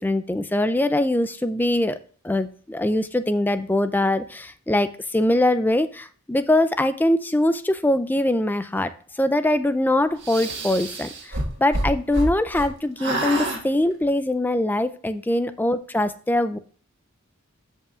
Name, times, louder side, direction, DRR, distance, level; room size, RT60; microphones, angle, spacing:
voice 1, 0.0-2.0 2.2-16.6, left 1 dB, 10° left, 12 dB, 0.4 m, -22 dB
sound 1, 10.2-12.7 13.0-13.6, right 1 dB, 50° right, 1.7 m, -27 dB
14.0 x 5.5 x 2.4 m, 0.41 s
head